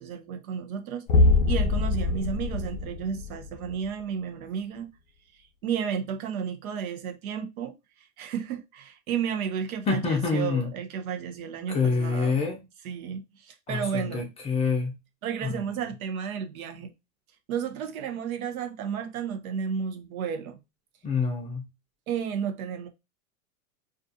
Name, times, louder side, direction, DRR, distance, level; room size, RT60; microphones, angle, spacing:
voice 1, 0.0-4.9 5.6-12.4 12.8-14.3 15.2-16.9 17.5-20.6 22.1-22.9, right 7 dB, 85° right, 0.7 m, -32 dB
sound 1, 1.1-3.7, left 3 dB, 80° left, 0.6 m, -23 dB
voice 2, 9.9-10.7 11.7-12.6 13.7-14.9 15.4-15.9 21.0-21.6, left 4 dB, 15° left, 0.4 m, -27 dB
2.4 x 2.3 x 2.6 m
supercardioid pair, 125°, 41 cm